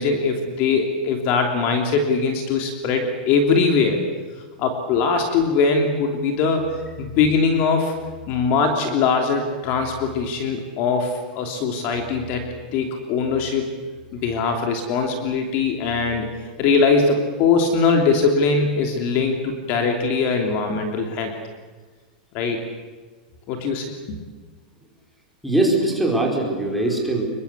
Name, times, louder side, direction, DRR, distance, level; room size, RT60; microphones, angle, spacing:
voice 1, 0.0-4.0 4.6-7.9 8.3-13.7 14.1-16.3 16.6-21.3 22.3-22.6 23.5-24.2, left 4 dB, 40° left, 4 dB, 3.1 m, -21 dB
voice 2, 25.4-27.2, right 2 dB, ahead, 0 dB, 4.9 m, -21 dB
27.0 x 23.0 x 8.4 m, 1.4 s
supercardioid pair, 160°, 5 cm